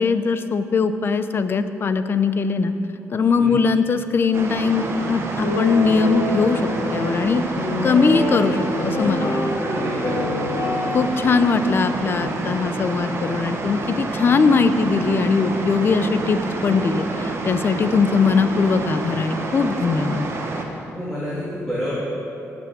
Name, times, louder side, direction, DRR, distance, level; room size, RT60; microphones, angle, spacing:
voice 1, 0.0-2.7 3.1-6.6 6.9-7.4 7.8-9.4 10.9-20.3, left 4 dB, 40° left, 10 dB, 0.7 m, -20 dB
sound 1, 4.3-20.6, right 3 dB, 50° right, 1.6 m, -28 dB
Guitar, 5.4-13.6, left 3 dB, 75° left, 2.3 m, -28 dB
voice 2, 9.6-10.2 20.9-21.9, equal, 5° left, -10 dB, 3.2 m, -28 dB
18.0 x 6.2 x 7.1 m, 2.9 s
cardioid pair, 125°, 6 cm